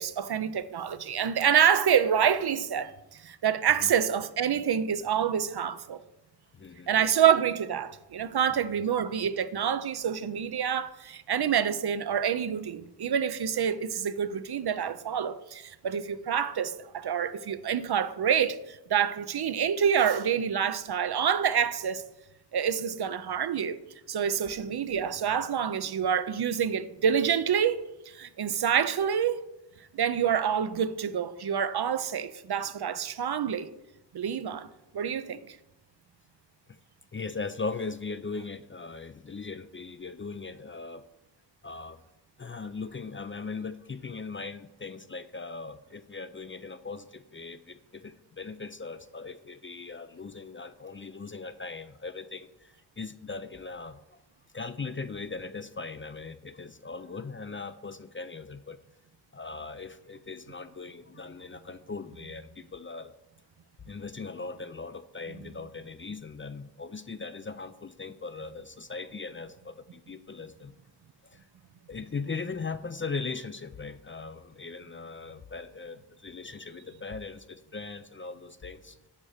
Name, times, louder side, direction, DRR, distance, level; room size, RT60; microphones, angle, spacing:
voice 1, 0.0-2.9 3.2-6.0 6.9-22.0 22.5-23.8 24.1-29.4 29.9-33.7 34.1-34.7 34.9-35.6, right 8 dB, 60° right, 0.6 m, -27 dB
voice 2, 6.5-6.9 8.5-8.8 36.7-36.8 37.1-41.0 41.6-42.0 42.4-54.2 54.5-58.8 59.3-63.1 63.9-70.8 71.2-71.5 71.9-79.0, left 4 dB, 30° left, 0.4 m, -39 dB
9.7 x 4.3 x 6.4 m
wide cardioid pair, 90°, 44 cm